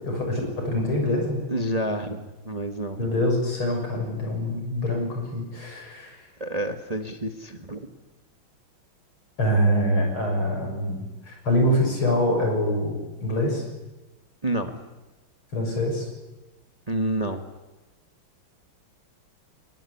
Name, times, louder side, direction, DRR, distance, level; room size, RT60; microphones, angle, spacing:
voice 1, 0.0-1.4 3.0-6.2 9.4-13.6 15.5-16.1, equal, 80° left, 2 dB, 7.5 m, -25 dB
voice 2, 1.5-3.1 6.4-7.9 14.4-14.8 16.9-17.5, right 1 dB, 20° right, 6 dB, 1.4 m, -29 dB
22.5 x 21.0 x 9.9 m, 1.1 s
omnidirectional pair, 2.3 m